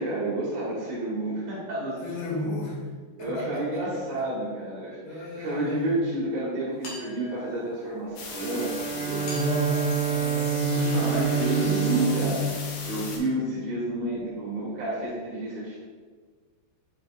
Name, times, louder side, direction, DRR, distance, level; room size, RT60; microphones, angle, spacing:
voice 1, 0.0-2.1 2.5-2.6 3.2-9.3 10.7-15.8, right 1 dB, 60° right, -7 dB, 2.0 m, -30 dB
voice 2, 2.0-2.8 3.2-3.8 5.0-6.0 9.2-12.3, left 3 dB, 70° left, -2 dB, 3.0 m, -32 dB
sound 1, 6.8-7.9 9.2-11.1, left 4 dB, 55° left, 2.6 m, -43 dB
sound 2, 8.2-13.2, left 4 dB, 90° left, 3.0 m, -38 dB
Bowed string instrument, 8.3-13.8, right 8 dB, 90° right, 1.7 m, -28 dB
7.9 x 5.0 x 2.4 m, 1.5 s
omnidirectional pair, 4.5 m